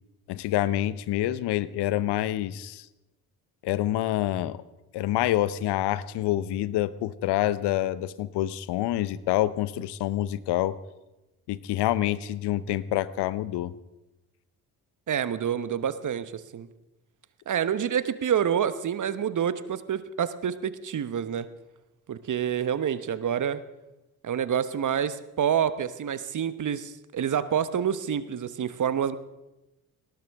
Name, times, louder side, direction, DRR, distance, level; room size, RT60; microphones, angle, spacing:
voice 1, 0.3-2.9 3.6-4.6 4.9-10.7 11.5-13.7, left 14 dB, 65° left, 17 dB, 0.9 m, -27 dB
voice 2, 15.1-16.7 17.5-21.5 22.1-23.6 24.2-29.2, right 8 dB, 45° right, 14 dB, 1.1 m, -27 dB
19.0 x 17.5 x 3.6 m, 1.0 s
hypercardioid pair, 45°, 44 cm